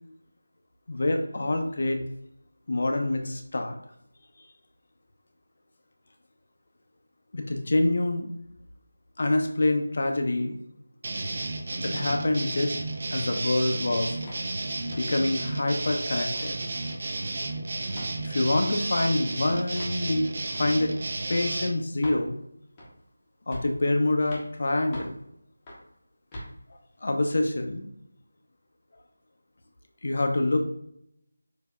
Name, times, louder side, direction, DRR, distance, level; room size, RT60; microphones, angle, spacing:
voice 1, 0.9-2.0 2.7-3.8 7.3-8.3 9.2-10.5 11.8-12.7 13.1-14.2 14.9-16.5 18.2-20.3 20.6-20.9 21.3-22.4 23.5-25.1 27.0-27.9 30.0-30.6, left 2 dB, 50° left, 4 dB, 0.5 m, -26 dB
sound 1, 11.0-21.7, right 2 dB, 35° right, 0.5 m, -32 dB
sound 2, 14.2-14.5 14.9-15.2 15.6-16.0 16.3-16.5 16.8-17.5 17.9-18.2 18.9-19.1 19.8-20.0 20.5-20.7 21.3-21.5 22.0-22.2 22.8-23.1 23.5-23.8 24.3-24.5 24.9-25.2 25.7-25.9 26.3-26.5, equal, 10° left, 0.7 m, -42 dB
6.7 x 2.7 x 2.2 m, 0.75 s
figure-of-eight pair, 175°, 0 cm